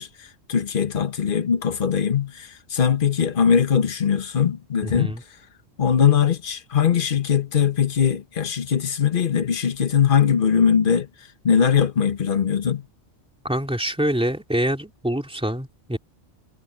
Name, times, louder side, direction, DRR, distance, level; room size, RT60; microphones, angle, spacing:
voice 1, 0.0-5.1 5.8-11.1 11.4-12.8, left 7 dB, 45° left, 1.3 m, -21 dB
voice 2, 4.8-5.2 13.4-16.0, right 1 dB, 5° right, 3.0 m, -25 dB
omnidirectional pair, 1.3 m